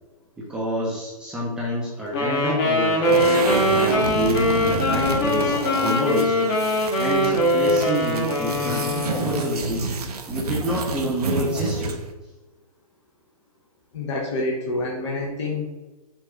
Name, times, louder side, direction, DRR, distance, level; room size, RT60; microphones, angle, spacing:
voice 1, 0.4-3.2 3.7-6.5 7.0-9.9 10.3-12.0, equal, 5° right, -7 dB, 0.6 m, -27 dB
Wind instrument woodwind instrument, 2.1-9.6, left 1 dB, 30° left, 1.1 m, -22 dB
sound 1, 3.0-12.1, right 4 dB, 85° right, 0.8 m, -29 dB
voice 2, 13.9-15.7, left 2 dB, 50° left, -1 dB, 1.0 m, -27 dB
5.7 x 2.7 x 3.4 m, 1.1 s
hypercardioid pair, 145°, 19 cm